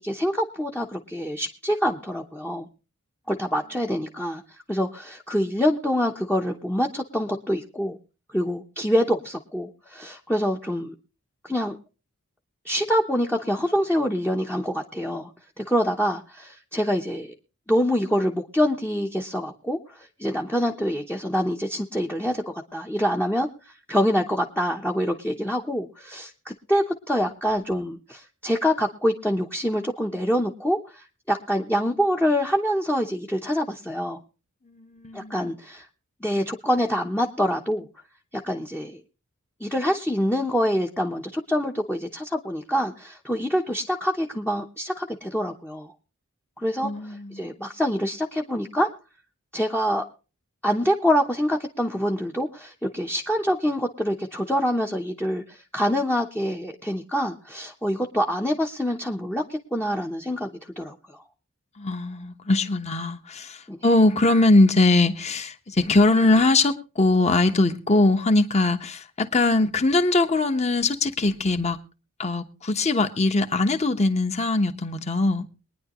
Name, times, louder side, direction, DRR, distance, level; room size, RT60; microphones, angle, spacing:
voice 1, 0.0-2.7 3.3-4.4 4.7-8.0 8.3-10.9 11.4-11.8 12.6-15.3 15.6-17.3 17.7-23.5 23.9-34.2 35.1-35.9 36.2-37.9 38.4-39.0 39.6-45.9 46.6-48.9 49.5-50.0 50.6-61.2 63.7-63.8, equal, 5° left, 0.9 m, -25 dB
voice 2, 34.7-35.4 46.8-47.5 61.8-71.8 72.2-75.5, left 2 dB, 30° left, 1.1 m, -21 dB
23.0 x 10.0 x 3.0 m
head